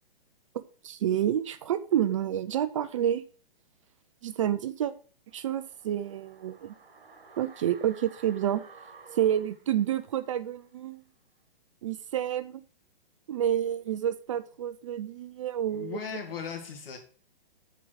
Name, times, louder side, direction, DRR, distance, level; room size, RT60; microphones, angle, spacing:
voice 1, 0.8-3.2 4.2-4.9 5.3-6.7 7.4-8.6 9.1-11.0 11.8-12.6 13.3-16.0, right 10 dB, 35° right, 0.4 m, -29 dB
sound 1, 5.3-10.4 10.7-10.8, right 5 dB, 70° right, 2.2 m, -53 dB
voice 2, 15.7-17.0, left 7 dB, 70° left, 2.8 m, -37 dB
7.7 x 4.7 x 6.2 m
hypercardioid pair, 150°, 29 cm